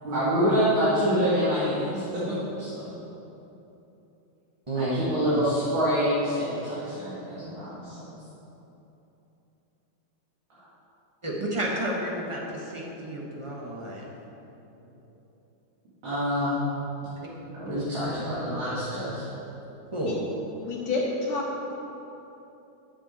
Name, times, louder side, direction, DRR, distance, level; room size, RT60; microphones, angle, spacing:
voice 1, 0.0-3.0 4.7-8.2 16.0-16.6 17.5-19.2, equal, 70° right, -10 dB, 2.8 m, -26 dB
voice 2, 4.7-5.0 11.2-14.0 17.2-17.3 17.7-17.8 18.0-18.4 19.9-20.2, right 1 dB, 20° right, -3 dB, 1.1 m, -31 dB
voice 3, 20.6-21.8, left 2 dB, 70° left, -3 dB, 1.7 m, -29 dB
11.0 x 7.7 x 4.3 m, 3.0 s
omnidirectional pair, 2.3 m